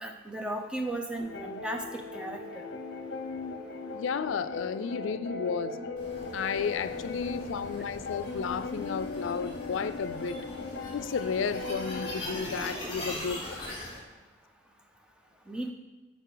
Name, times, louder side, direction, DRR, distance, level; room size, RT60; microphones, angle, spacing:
voice 1, 0.0-1.8 2.1-2.4 15.5-15.7, right 1 dB, 5° right, 3 dB, 0.6 m, -35 dB
sound 1, 1.2-12.2, left 3 dB, 60° left, 0.8 m, -38 dB
voice 2, 3.9-5.8 6.3-10.4 10.9-13.6, left 6 dB, 90° left, 13 dB, 0.4 m, -33 dB
sound 2, 6.0-14.0, left 1 dB, 25° left, 2.6 m, -41 dB
9.3 x 4.9 x 3.9 m, 1.2 s
head